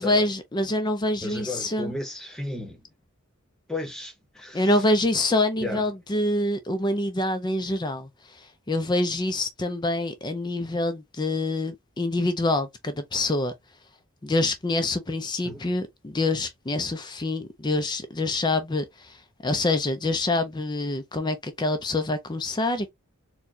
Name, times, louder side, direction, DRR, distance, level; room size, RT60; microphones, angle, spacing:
voice 1, 0.0-1.9 4.5-13.5 14.2-22.9, left 2 dB, 20° left, 0.4 m, -26 dB
voice 2, 1.2-2.8 3.7-4.7 5.6-5.8 15.4-15.6, left 2 dB, 5° left, 1.0 m, -34 dB
4.3 x 2.2 x 2.7 m
head